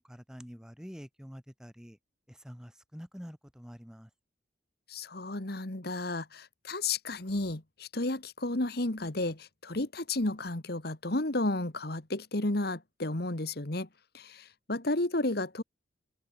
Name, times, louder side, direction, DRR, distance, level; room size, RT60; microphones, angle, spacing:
voice 1, 0.0-2.0 2.3-4.1, equal, 5° right, 3.3 m, -47 dB
voice 2, 4.9-13.9 14.1-15.6, left 2 dB, 55° left, 1.8 m, -32 dB
open air
head